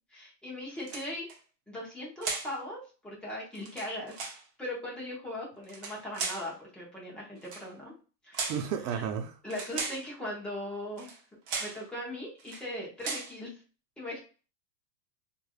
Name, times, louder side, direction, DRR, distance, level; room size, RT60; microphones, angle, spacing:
voice 1, 0.1-1.3 1.7-4.3 4.6-7.9 8.2-8.5 8.9-9.0 9.4-11.1 11.6-13.5 14.0-14.2, left 1 dB, ahead, 0.6 m, -39 dB
sound 1, 0.8-1.4 2.2-2.6 3.5-4.4 5.6-6.5 7.4-7.7 8.3-8.7 9.5-10.1 11.0-11.2 11.5-11.8 12.4-12.7 13.0-13.3, right 4 dB, 35° right, 0.6 m, -37 dB
voice 2, 8.5-9.4, right 8 dB, 85° right, 0.8 m, -33 dB
3.2 x 2.5 x 2.3 m
supercardioid pair, 150°, 49 cm